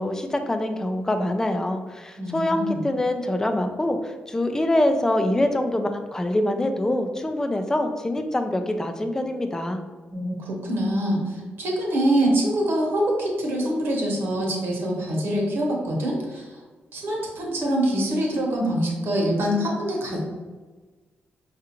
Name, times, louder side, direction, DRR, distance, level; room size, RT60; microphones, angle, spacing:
voice 1, 0.0-9.8, left 1 dB, 15° left, 6 dB, 0.4 m, -25 dB
voice 2, 2.2-2.8 10.1-16.6 16.9-20.2, right 1 dB, 75° right, -1 dB, 1.0 m, -24 dB
4.7 x 2.4 x 2.9 m, 1.3 s
cardioid pair, 100°, 4 cm